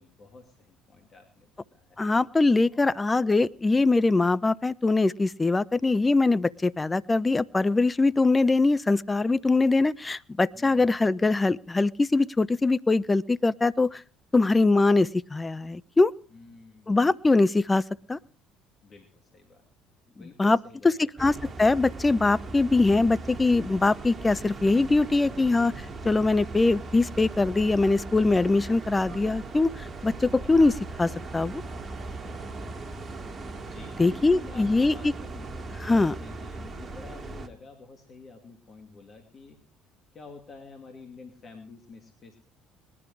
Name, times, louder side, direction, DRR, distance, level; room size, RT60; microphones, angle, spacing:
voice 1, 0.0-2.1 2.7-2.9 10.5-11.0 16.3-17.0 18.8-19.6 20.2-20.9 33.7-39.6 40.1-42.4, left 4 dB, 40° left, 5 dB, 2.6 m, -49 dB
voice 2, 2.0-14.0 14.3-16.1 16.9-17.8 18.1-18.2 20.4-20.6 20.8-21.3 21.6-31.6 34.0-35.1 35.8-36.1, left 3 dB, 20° left, 17 dB, 0.6 m, -22 dB
sound 1, 21.2-37.5, right 3 dB, 35° right, 2.2 m, -39 dB
20.0 x 11.0 x 4.8 m, 0.41 s
hypercardioid pair, 60°, 0 cm